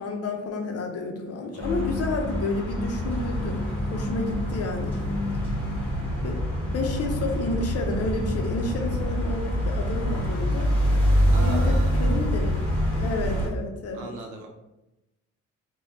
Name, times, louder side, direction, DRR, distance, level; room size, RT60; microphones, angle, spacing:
voice 1, 0.0-3.6 3.9-5.0 6.0-10.7 11.4-12.5 13.0-14.1, left 2 dB, 55° left, 3 dB, 0.6 m, -30 dB
voice 2, 1.5-1.9 11.3-12.3 13.9-14.5, right 2 dB, 90° right, 2 dB, 0.6 m, -38 dB
sound 1, 1.6-13.5, equal, 5° left, 1.2 m, -25 dB
3.2 x 2.2 x 2.7 m, 0.95 s
cardioid pair, 90°, 30 cm